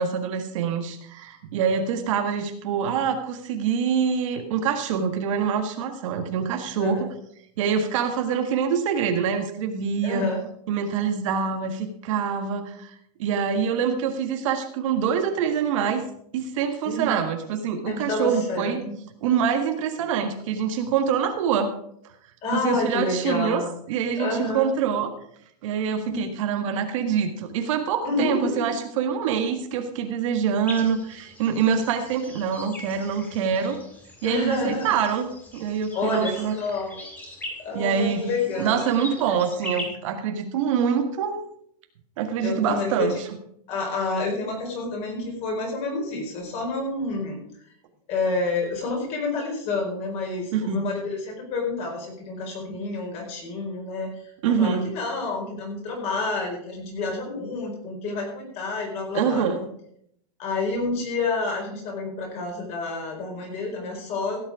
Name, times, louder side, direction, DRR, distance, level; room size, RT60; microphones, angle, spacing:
voice 1, 0.0-7.1 7.6-10.3 10.7-16.0 16.3-18.8 19.2-21.7 22.5-25.1 25.6-33.8 34.2-36.5 37.7-41.4 42.2-43.3 50.5-50.8 54.4-54.9 59.1-59.6, right 7 dB, 55° right, 6 dB, 1.7 m, -25 dB
voice 2, 10.0-10.4 16.8-17.2 17.8-18.9 22.4-23.7 24.2-24.7 26.1-26.3 28.0-28.6 34.2-34.9 35.9-37.0 37.6-38.8 42.4-43.1 43.7-47.4 48.1-54.1 54.5-59.6 60.4-64.4, left 3 dB, 35° left, 1 dB, 4.7 m, -29 dB
sound 1, 30.7-39.8, left 1 dB, 10° left, 2.2 m, -41 dB
16.0 x 7.8 x 4.9 m, 0.69 s
supercardioid pair, 160°, 20 cm